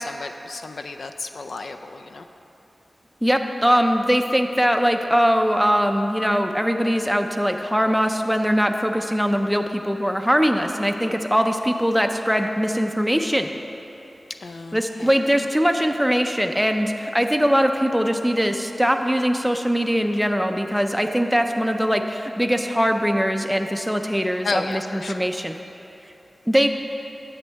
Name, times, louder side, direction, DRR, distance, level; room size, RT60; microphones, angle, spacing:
voice 1, 0.0-2.3 14.4-15.2 24.4-25.3, left 3 dB, 80° left, 6 dB, 0.4 m, -33 dB
voice 2, 3.2-13.5 14.7-25.5 26.5-26.7, equal, ahead, 5 dB, 0.5 m, -21 dB
9.8 x 7.2 x 3.4 m, 3.0 s
wide cardioid pair, 75°, 0 cm